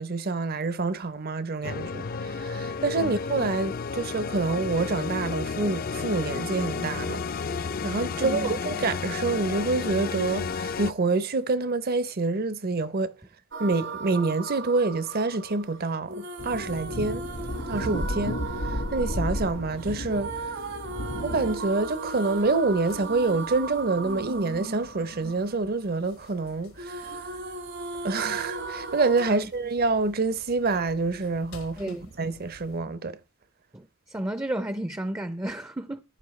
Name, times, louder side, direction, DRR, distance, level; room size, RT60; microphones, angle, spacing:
voice 1, 0.0-7.2 7.8-13.1 13.6-17.2 17.7-18.4 18.7-20.3 21.2-27.2 28.0-33.2, right 3 dB, 50° right, 0.7 m, -27 dB
sound 1, 1.6-10.9, left 5 dB, 45° left, 0.5 m, -32 dB
voice 2, 8.2-8.6 29.3-29.5 31.8-32.0 33.7-36.0, right 1 dB, 15° right, 0.5 m, -33 dB
sound 2, 13.5-26.5 26.8-29.3, right 3 dB, 65° right, 1.5 m, -37 dB
sound 3, 16.4-32.8, left 1 dB, 90° left, 1.7 m, -36 dB
14.0 x 10.5 x 3.2 m
head